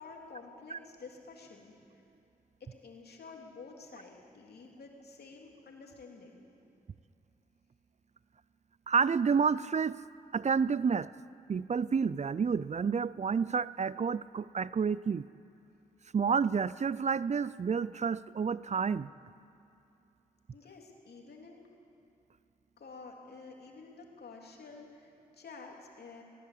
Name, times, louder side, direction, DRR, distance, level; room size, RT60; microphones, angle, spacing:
voice 1, 0.0-2.0 2.6-6.5 20.5-21.6 22.8-26.2, left 4 dB, 75° left, 1 dB, 3.1 m, -50 dB
voice 2, 8.9-10.0 10.3-11.1 11.5-15.3 16.1-19.1, right 6 dB, 45° right, 18 dB, 0.5 m, -29 dB
18.0 x 17.5 x 8.6 m, 2.7 s
cardioid pair, 45°, 17 cm